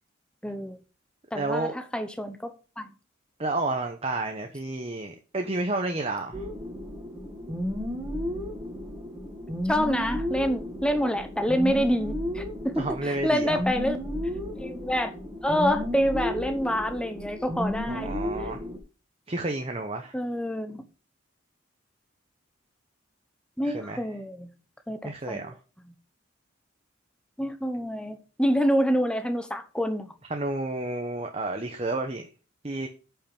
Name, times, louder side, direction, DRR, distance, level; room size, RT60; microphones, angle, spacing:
voice 1, 0.4-0.8 1.3-2.9 9.7-14.0 14.6-15.1 15.4-18.2 20.1-20.9 23.6-24.5 24.9-25.5 27.4-30.1, equal, 5° left, 0.9 m, -27 dB
voice 2, 1.3-1.7 3.4-6.5 12.8-13.6 17.9-18.6 19.3-20.2 23.6-24.0 25.0-25.6 30.3-32.3 32.6-32.9, right 2 dB, 30° right, 0.9 m, -30 dB
sound 1, 6.3-18.8, left 1 dB, 15° right, 1.7 m, -33 dB
9.1 x 5.7 x 5.3 m
head